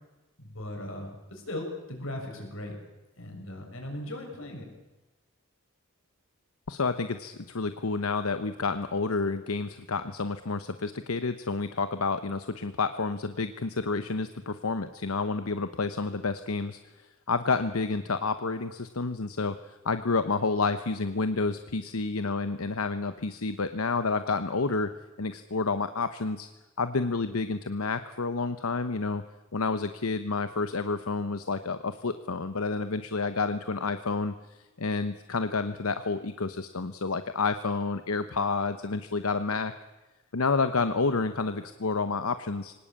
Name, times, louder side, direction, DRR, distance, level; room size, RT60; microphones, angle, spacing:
voice 1, 0.4-2.8 3.2-4.7, left 1 dB, 70° left, 2 dB, 6.7 m, -38 dB
voice 2, 6.7-16.8 17.3-24.9 25.2-26.5 26.8-29.2 29.5-39.7 40.3-42.7, left 4 dB, 90° left, 11 dB, 1.0 m, -29 dB
24.0 x 18.5 x 8.7 m, 1.1 s
head